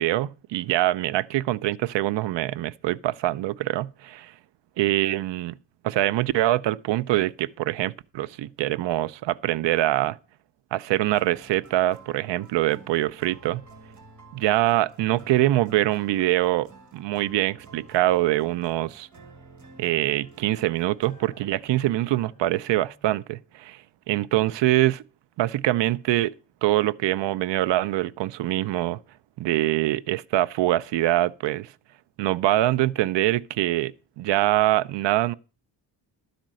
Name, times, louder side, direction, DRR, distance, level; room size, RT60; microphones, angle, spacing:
voice 1, 0.0-4.3 4.8-5.6 5.8-10.2 10.7-13.6 14.3-19.1 19.8-23.8 24.1-25.0 25.4-26.3 26.6-29.0 29.4-31.7 32.2-35.3, right 15 dB, 75° right, 0.5 m, -24 dB
sound 1, 10.9-23.2, right 3 dB, 40° right, 2.0 m, -51 dB
12.0 x 5.1 x 7.5 m
wide cardioid pair, 180°, 43 cm